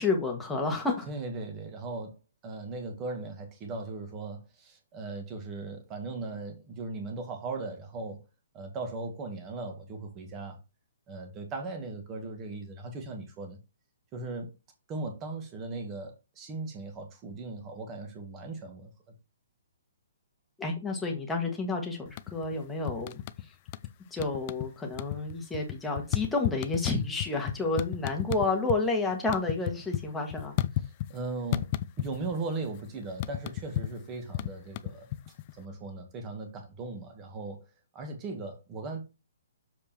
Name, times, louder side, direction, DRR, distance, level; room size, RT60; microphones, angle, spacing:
voice 1, 0.0-1.1 20.6-23.2 24.1-30.6, left 3 dB, 5° left, 1.7 m, -30 dB
voice 2, 1.1-2.2 2.4-8.2 8.5-10.6 11.1-13.6 14.1-14.5 14.9-19.2 31.1-31.7 32.0-35.1 35.5-37.7 37.9-39.0, right 3 dB, 20° right, 2.0 m, -38 dB
sound 1, 22.1-22.6 22.9-23.9 24.2-24.7 24.9-28.8 29.1-31.2 31.5-32.4 32.6-35.5, left 14 dB, 30° left, 0.4 m, -33 dB
7.2 x 5.2 x 4.5 m
hypercardioid pair, 165°, 0 cm